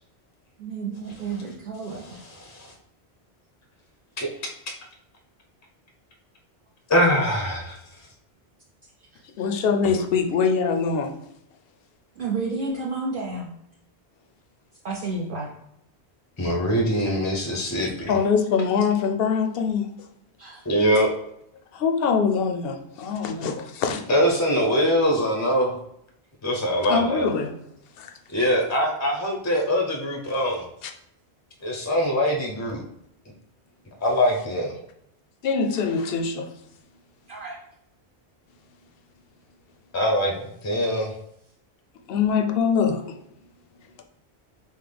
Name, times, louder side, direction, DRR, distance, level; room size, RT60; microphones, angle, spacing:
voice 1, 0.6-2.2 9.1-9.2 12.2-13.5 14.8-15.5 20.4-20.6 37.3-37.6, right 3 dB, 55° right, -4 dB, 0.8 m, -31 dB
voice 2, 2.0-2.7 4.2-4.3 6.9-7.8 9.8-10.0 16.4-18.2 20.6-21.1 24.1-25.8 26.4-27.3 28.3-30.6 31.6-32.8 34.0-34.7 39.9-40.3 40.6-41.1, equal, 20° left, 1 dB, 0.5 m, -23 dB
voice 3, 9.4-11.1 18.1-19.9 21.7-24.0 26.9-27.5 28.0-28.1 35.4-36.5 42.1-43.0, left 6 dB, 70° left, 5 dB, 0.7 m, -23 dB
5.7 x 2.1 x 3.3 m, 0.77 s
omnidirectional pair, 1.1 m